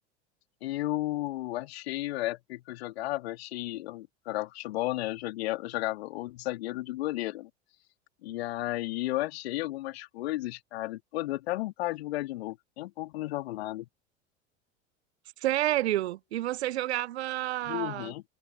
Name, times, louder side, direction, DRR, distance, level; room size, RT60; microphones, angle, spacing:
voice 1, 0.6-7.5 8.2-13.9 17.6-18.2, left 17 dB, 60° left, 2.6 m, -33 dB
voice 2, 15.4-18.1, right 14 dB, 65° right, 1.0 m, -29 dB
figure-of-eight pair, 80°, 35 cm